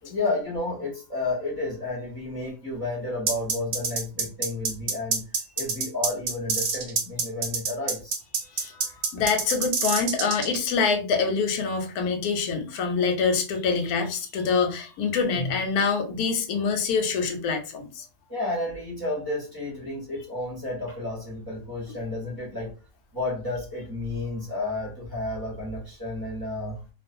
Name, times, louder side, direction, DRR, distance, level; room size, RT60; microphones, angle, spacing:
voice 1, 0.0-5.2 5.6-8.2 8.5-9.1 18.3-22.7 23.1-26.8, left 2 dB, 20° right, -5 dB, 0.9 m, -31 dB
sound 1, 3.3-10.6, right 5 dB, 70° right, 1.0 m, -26 dB
voice 2, 8.4-8.7 9.1-18.0, left 5 dB, 85° left, 4 dB, 1.1 m, -25 dB
2.4 x 2.4 x 2.6 m, 0.33 s
omnidirectional pair, 1.5 m